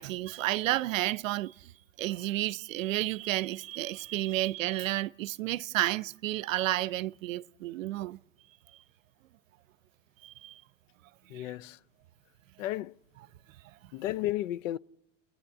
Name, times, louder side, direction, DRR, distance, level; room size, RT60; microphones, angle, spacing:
voice 1, 0.0-1.5 2.0-8.2 10.2-10.6 11.3-11.5, right 16 dB, 85° right, 0.6 m, -31 dB
voice 2, 11.3-11.8 12.6-13.0 13.9-14.8, left 14 dB, 75° left, 0.7 m, -33 dB
29.5 x 10.0 x 8.5 m
hypercardioid pair, 105°, 38 cm